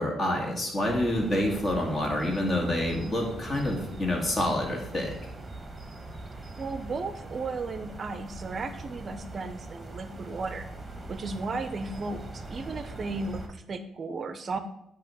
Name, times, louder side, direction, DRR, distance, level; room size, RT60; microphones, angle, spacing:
voice 1, 0.0-5.3, left 1 dB, 35° left, 0 dB, 2.1 m, -28 dB
sound 1, 0.8-13.5, right 2 dB, 20° right, 1.3 m, -42 dB
voice 2, 6.6-10.6 11.1-14.6, right 3 dB, 45° right, 9 dB, 0.5 m, -35 dB
8.6 x 2.9 x 6.0 m, 0.81 s
cardioid pair, 90°, 0 cm